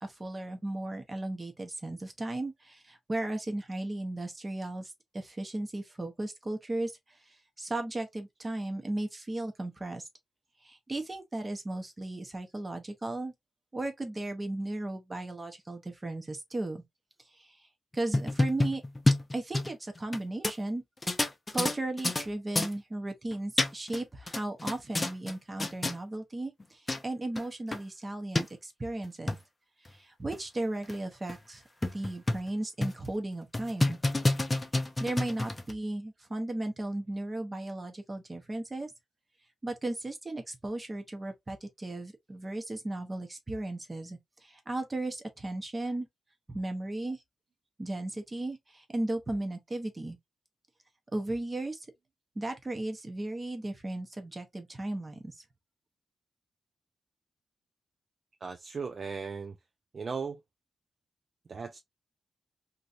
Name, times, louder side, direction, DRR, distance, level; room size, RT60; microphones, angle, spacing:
voice 1, 0.0-10.1 10.6-13.3 13.7-16.8 17.3-17.6 17.9-18.8 19.3-20.8 21.5-29.4 29.8-34.0 35.0-38.9 39.6-46.1 46.5-47.2 47.8-50.2 51.1-51.9 52.4-55.4, right 2 dB, 20° right, 0.8 m, -36 dB
sound 1, 17.9-20.2 20.4-20.5 21.0-22.3 22.6-22.7 23.3-24.0 24.3-25.3 25.6-26.0 26.6-26.7 26.9-27.0 27.4-27.5 27.7-27.8 28.4-28.5 29.0-29.4 29.9-30.0 30.3-30.4 30.9-31.0 31.3-31.4 31.8-32.5 32.8-33.1 33.5-35.7, left 2 dB, 20° left, 0.5 m, -28 dB
voice 2, 58.4-59.6 59.9-60.4 61.5-61.8, right 5 dB, 40° right, 0.3 m, -37 dB
3.0 x 2.7 x 2.5 m
wide cardioid pair, 145°, 0 cm